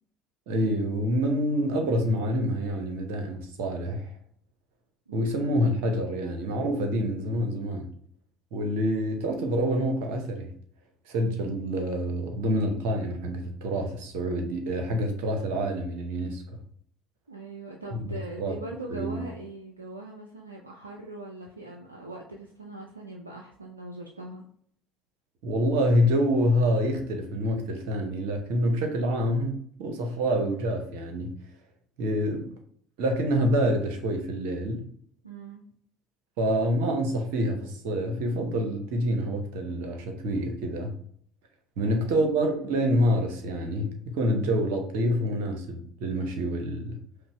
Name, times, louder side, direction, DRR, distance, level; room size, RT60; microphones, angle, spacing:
voice 1, 0.5-4.1 5.1-7.9 8.5-10.5 11.1-16.4 18.0-18.1 18.4-18.6 18.9-19.2 25.4-31.4 32.0-32.5 33.0-34.8 36.4-40.9 41.8-47.0, equal, 65° right, 0.7 m, -27 dB
voice 2, 5.1-5.4 17.3-24.4 35.2-35.6 41.8-42.3, right 2 dB, 85° right, 0.3 m, -41 dB
5.2 x 2.0 x 3.0 m
figure-of-eight pair, 60°, 0 cm